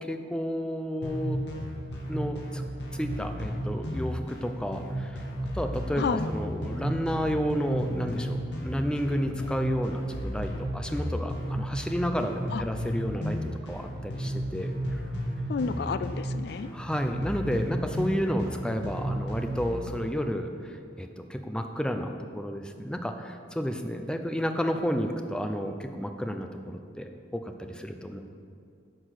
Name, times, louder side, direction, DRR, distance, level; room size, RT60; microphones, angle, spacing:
voice 1, 0.0-1.4 2.1-2.6 2.9-5.3 5.5-13.4 13.7-15.0 16.7-28.2, equal, 5° left, 5 dB, 0.7 m, -31 dB
sound 1, 1.0-19.8, equal, 80° left, 2.0 m, -33 dB
voice 2, 6.0-6.3 12.5-12.6 15.5-16.7, left 5 dB, 65° left, 12 dB, 0.3 m, -30 dB
11.0 x 6.0 x 6.6 m, 2.4 s
head